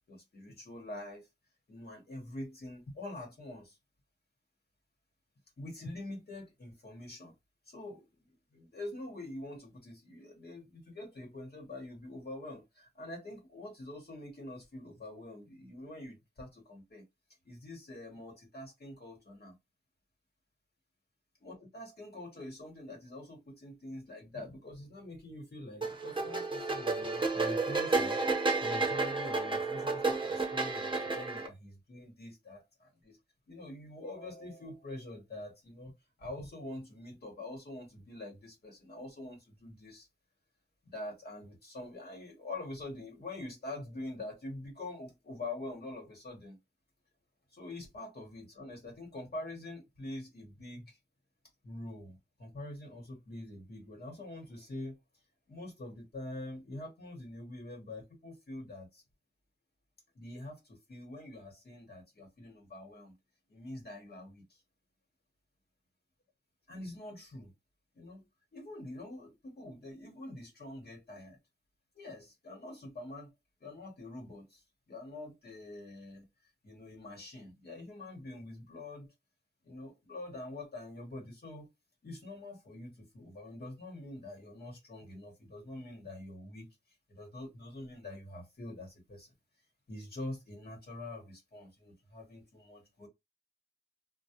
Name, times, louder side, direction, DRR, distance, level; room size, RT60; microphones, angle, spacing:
voice 1, 0.1-1.3 1.7-3.8 5.6-7.3 7.7-8.1 8.5-17.0 17.4-19.6 21.4-28.2 28.6-33.2 33.5-35.9 36.2-40.1 40.8-46.6 47.5-51.0 51.6-55.0 55.5-59.0 60.1-63.1 63.5-64.6 66.7-67.5 67.9-68.2 68.5-71.4 71.9-73.3 73.6-76.3 76.6-79.1 79.6-81.7 82.0-86.7 87.1-89.3 89.9-93.1, left 1 dB, 65° left, 1.0 m, -45 dB
sound 1, 25.8-31.5, right 3 dB, 30° right, 0.7 m, -31 dB
2.3 x 2.0 x 2.7 m
wide cardioid pair, 65°, 18 cm